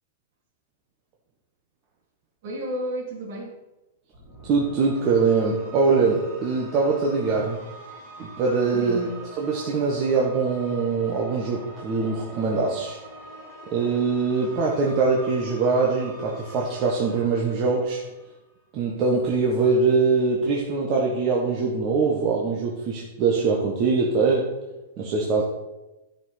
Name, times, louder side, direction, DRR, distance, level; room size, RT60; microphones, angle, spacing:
voice 1, 2.4-3.6 8.7-9.2 25.4-25.5, equal, 45° right, -2 dB, 3.3 m, -32 dB
sound 1, 4.1-18.5, right 1 dB, 5° right, 3.4 m, -44 dB
voice 2, 4.4-7.6 8.2-9.0 9.4-13.0 13.7-18.0 18.7-24.5 25.0-25.4, right 4 dB, 25° right, -3 dB, 1.4 m, -23 dB
13.0 x 6.0 x 5.9 m, 1.0 s
supercardioid pair, 175°, 0 cm